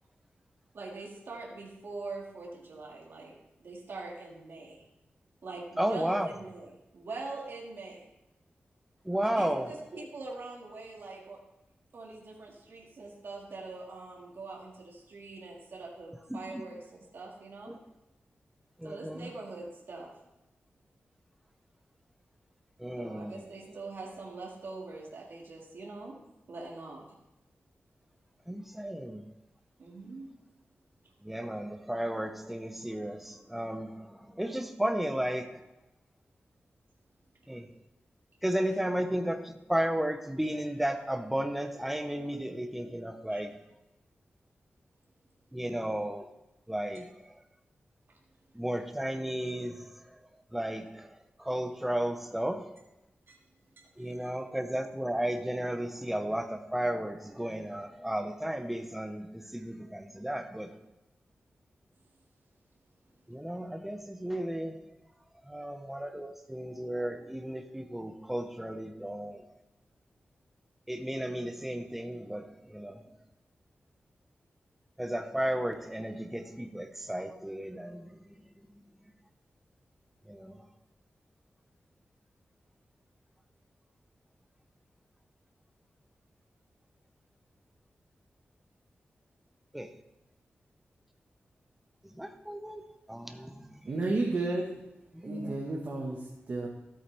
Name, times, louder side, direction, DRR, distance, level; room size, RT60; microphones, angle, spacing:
voice 1, 0.7-3.3 3.6-4.8 5.4-8.1 9.2-11.4 11.9-17.8 18.8-20.1 23.0-26.2 26.5-27.1 29.8-30.3 43.3-43.4 46.9-47.0 48.1-48.2 53.3-53.4 53.8-54.3, right 3 dB, 65° right, -2 dB, 1.9 m, -43 dB
voice 2, 5.8-6.3 9.1-9.7 16.3-16.6 18.8-19.3 22.8-23.4 28.5-29.3 31.2-35.6 37.5-37.6 38.4-43.5 45.5-46.3 46.7-47.0 48.5-49.8 50.5-51.1 51.4-52.7 54.0-60.7 63.3-64.7 65.5-69.4 70.9-73.0 75.0-78.1 80.3-80.6 89.7-89.9 92.2-92.8 93.1-93.7 95.2-95.5, right 1 dB, 5° right, 7 dB, 0.7 m, -33 dB
voice 3, 93.9-94.7 95.2-96.2 96.5-96.7, right 2 dB, 50° right, -3 dB, 1.4 m, -31 dB
13.0 x 8.4 x 3.4 m, 0.94 s
wide cardioid pair, 155°, 4 cm